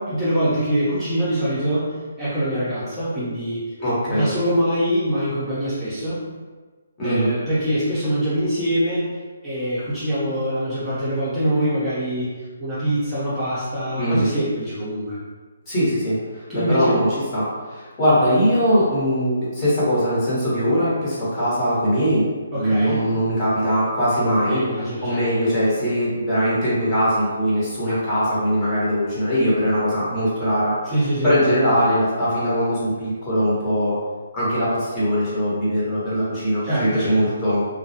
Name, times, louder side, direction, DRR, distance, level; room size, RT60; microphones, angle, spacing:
voice 1, 0.0-3.7 4.1-6.2 7.0-12.3 12.6-15.2 16.5-17.0 22.5-23.1 24.5-25.2 30.8-31.3 36.6-37.3, equal, 15° right, -12 dB, 0.6 m, -24 dB
voice 2, 3.8-4.3 7.0-7.3 14.0-14.3 15.7-17.1 17.3-22.3 22.5-24.6 25.0-30.7 31.2-33.9 34.3-37.6, equal, 20° left, -10 dB, 1.0 m, -21 dB
2.2 x 2.0 x 2.8 m, 1.4 s
figure-of-eight pair, 145°, 0 cm